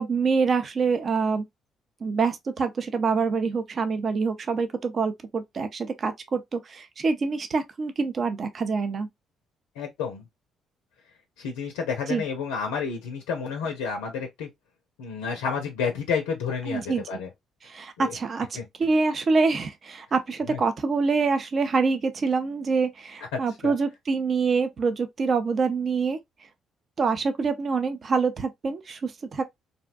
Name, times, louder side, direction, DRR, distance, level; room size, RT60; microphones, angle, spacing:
voice 1, 0.0-1.4 2.0-9.1 12.1-12.2 16.7-17.2 17.6-26.2 27.0-29.4, right 4 dB, 50° right, 0.5 m, -26 dB
voice 2, 9.8-10.2 11.4-14.5 15.0-17.3 18.0-18.1 18.6-18.7 20.5-20.6 23.3-23.7, left 6 dB, 85° left, 0.4 m, -30 dB
2.6 x 2.1 x 2.4 m
hypercardioid pair, 50°, 0 cm